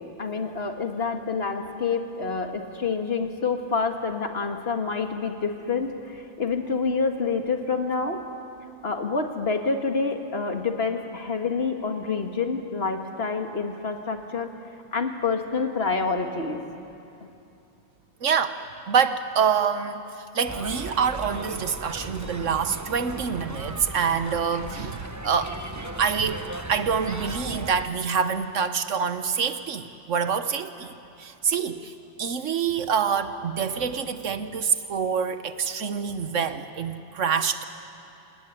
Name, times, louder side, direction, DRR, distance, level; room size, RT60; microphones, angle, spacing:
voice 1, 0.2-8.2 8.8-14.5 14.9-16.6, left 4 dB, 55° left, 4 dB, 2.1 m, -27 dB
voice 2, 18.2-18.6 18.9-20.0 20.3-25.6 26.0-26.4 26.7-30.9 31.2-31.9 32.2-37.6, right 6 dB, 90° right, 10 dB, 1.5 m, -26 dB
sound 1, 20.5-27.8, right 2 dB, 15° right, 1.0 m, -37 dB
28.5 x 18.0 x 9.9 m, 2.7 s
omnidirectional pair, 1.2 m